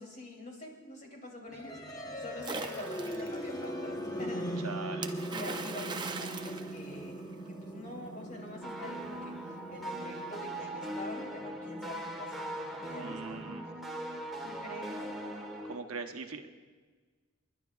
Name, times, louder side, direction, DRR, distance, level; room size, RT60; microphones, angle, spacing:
voice 1, 0.0-4.5 5.3-13.5 14.4-15.0, left 1 dB, 35° left, 0 dB, 3.0 m, -46 dB
sound 1, 1.5-13.4, equal, 15° left, 1.0 m, -41 dB
Splash splatter, 2.4-3.4 5.0-7.5, right 4 dB, 20° right, 0.6 m, -40 dB
voice 2, 4.6-5.1 13.0-13.6 15.6-16.5, right 4 dB, 85° right, 5 dB, 0.9 m, -41 dB
sound 2, 8.6-15.8, right 1 dB, ahead, 1.4 m, -40 dB
29.5 x 11.0 x 2.4 m, 1.4 s
head